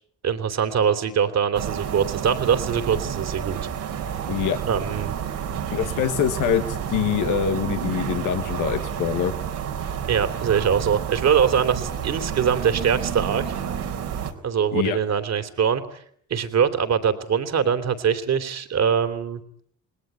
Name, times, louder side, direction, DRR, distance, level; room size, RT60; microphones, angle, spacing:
voice 1, 0.2-3.6 4.6-5.1 10.1-13.5 14.4-15.8 16.3-19.4, right 7 dB, 60° right, 9 dB, 3.2 m, -22 dB
sound 1, 1.5-14.3, right 8 dB, 90° right, 4.0 m, -30 dB
voice 2, 4.3-4.6 5.7-9.3 14.7-15.0, left 9 dB, 85° left, 7 dB, 1.6 m, -24 dB
29.0 x 20.5 x 9.5 m, 0.67 s
cardioid pair, 90°, 30 cm